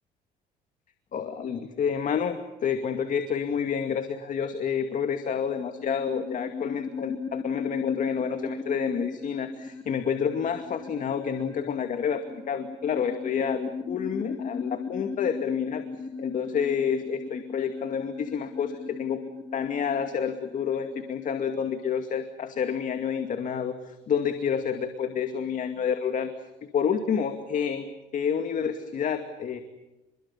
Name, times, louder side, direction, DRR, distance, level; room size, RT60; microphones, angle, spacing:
voice 1, 1.1-15.8 16.2-19.2 19.5-26.3 26.7-27.9 28.1-29.6, left 7 dB, 50° left, 7 dB, 2.3 m, -29 dB
sound 1, 4.9-21.3, left 5 dB, 20° left, 3.2 m, -38 dB
29.0 x 23.0 x 7.3 m, 1.0 s
cardioid pair, 110°, 17 cm